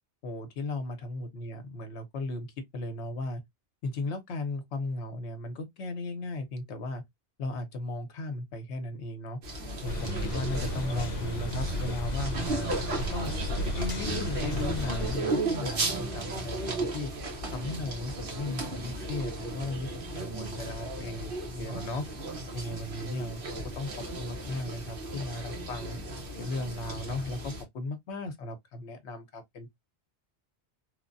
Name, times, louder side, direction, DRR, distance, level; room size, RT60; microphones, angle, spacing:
voice 1, 0.2-2.5 2.7-3.4 3.8-7.0 7.4-9.4 9.8-13.3 13.8-17.1 17.5-19.9 20.1-22.0 22.5-26.0 26.4-29.7, left 2 dB, 75° left, 1.0 m, -36 dB
sound 1, 9.4-27.6, right 2 dB, 55° right, 1.0 m, -35 dB
sound 2, 9.8-15.2, left 1 dB, 50° left, 0.5 m, -33 dB
3.1 x 2.1 x 2.5 m
omnidirectional pair, 1.2 m